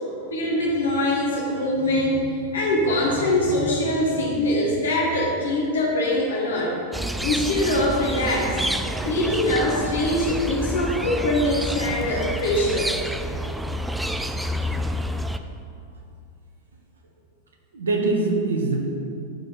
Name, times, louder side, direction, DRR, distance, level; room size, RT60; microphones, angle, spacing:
voice 1, 0.3-6.8 7.2-8.6 9.0-12.9, left 1 dB, 65° left, -3 dB, 1.7 m, -23 dB
sound 1, 6.9-15.4, equal, 5° right, 0.3 m, -28 dB
voice 2, 17.7-18.8, right 3 dB, 70° right, 1 dB, 1.2 m, -23 dB
11.5 x 4.3 x 4.1 m, 2.5 s
figure-of-eight pair, 90°, 0 cm